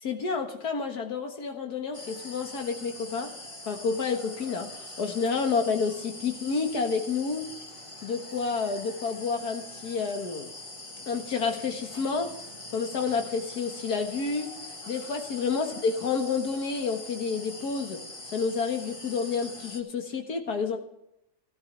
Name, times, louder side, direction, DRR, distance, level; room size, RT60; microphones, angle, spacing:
voice 1, 0.0-3.3 3.7-7.5 8.0-10.5 11.1-12.4 12.7-14.6 14.9-18.0 18.3-20.8, left 5 dB, 60° left, 5 dB, 2.0 m, -29 dB
sound 1, 1.9-19.8, left 2 dB, 20° left, 1.1 m, -43 dB
15.5 x 13.0 x 3.3 m, 0.83 s
omnidirectional pair, 2.0 m